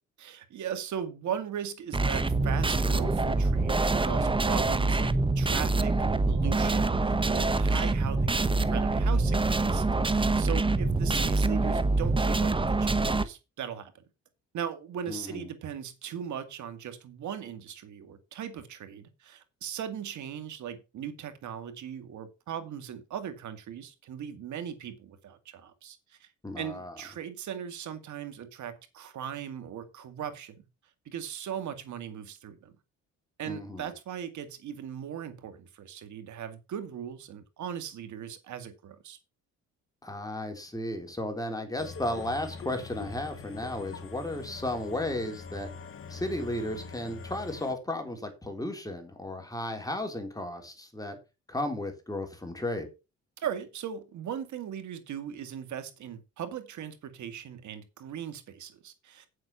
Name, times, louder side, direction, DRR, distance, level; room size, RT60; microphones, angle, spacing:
voice 1, 0.2-14.0 14.5-26.3 26.6-30.7 31.1-32.7 33.4-39.2 53.4-59.3, right 9 dB, 75° right, 2.1 m, -39 dB
sound 1, 1.9-13.2, right 3 dB, 15° right, 1.0 m, -25 dB
voice 2, 15.1-15.5 26.4-26.9 33.4-33.9 40.0-45.7 46.1-51.2 51.5-52.9, left 1 dB, 10° left, 3.4 m, -34 dB
sound 2, 41.8-47.7, left 4 dB, 45° left, 1.4 m, -43 dB
8.6 x 7.8 x 5.5 m
cardioid pair, 90°, 30 cm